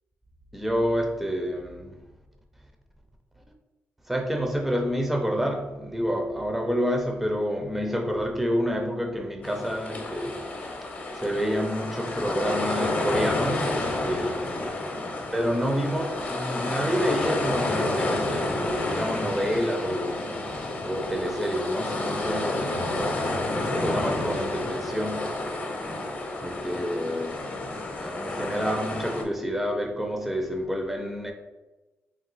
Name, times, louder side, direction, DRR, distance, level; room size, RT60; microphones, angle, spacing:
voice 1, 0.5-2.0 4.1-10.5 10.8-14.7 15.3-20.2 20.8-25.5 25.8-25.9 26.4-27.5 27.9-31.3, equal, 5° right, 0.4 m, -29 dB
sound 1, 9.4-29.2, left 2 dB, 35° left, 0.7 m, -30 dB
sound 2, 18.5-24.7, right 3 dB, 85° right, 0.6 m, -44 dB
3.8 x 2.4 x 4.0 m
cardioid pair, 125°, 5 cm